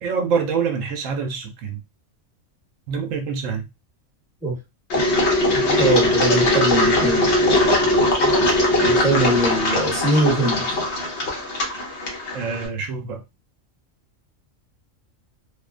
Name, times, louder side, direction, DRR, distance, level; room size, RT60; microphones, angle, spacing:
voice 1, 0.0-1.8 2.9-3.7 12.3-13.2, right 5 dB, 80° right, 1.0 m, -25 dB
Engine, 4.9-12.7, left 1 dB, 60° left, 1.1 m, -20 dB
voice 2, 5.5-7.3 8.8-10.7, right 2 dB, 5° right, 0.9 m, -22 dB
2.6 x 2.1 x 2.4 m
omnidirectional pair, 1.4 m